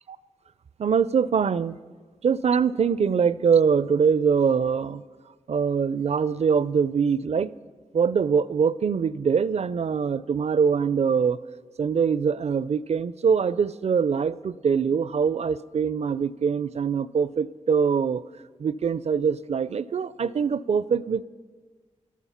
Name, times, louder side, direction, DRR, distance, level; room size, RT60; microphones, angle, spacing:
voice 1, 0.8-1.8 2.2-5.0 5.5-7.5 7.9-11.4 11.8-18.2 18.6-21.2, right 6 dB, 55° right, 18 dB, 0.4 m, -23 dB
12.5 x 12.5 x 5.7 m, 1.4 s
cardioid pair, 40°, 13 cm